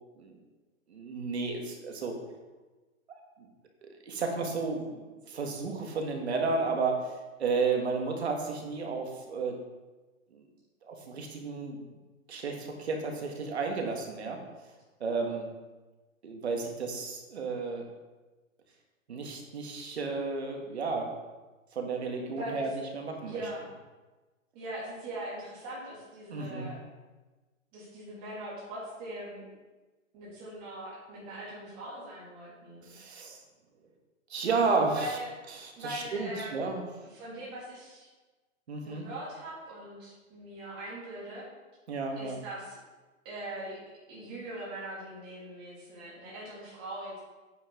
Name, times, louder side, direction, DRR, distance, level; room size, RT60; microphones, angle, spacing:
voice 1, 0.9-2.2 3.1-3.2 3.8-7.1 7.4-9.6 10.3-10.4 10.9-11.8 12.3-14.4 15.0-15.5 16.2-17.8 19.1-21.1 21.7-23.4 26.3-26.7 32.9-33.4 34.3-35.1 35.5-36.8 38.7-39.0 41.9-42.4, right 4 dB, 50° right, 2 dB, 1.8 m, -32 dB
voice 2, 22.3-22.7 23.3-23.6 24.5-26.8 27.7-29.5 30.1-32.8 34.9-35.3 35.8-36.6 37.0-38.1 38.8-41.4 42.2-42.8 43.2-43.8 44.1-47.2, right 1 dB, 20° right, -7 dB, 2.8 m, -41 dB
8.9 x 8.2 x 3.8 m, 1.2 s
hypercardioid pair, 180°, 40 cm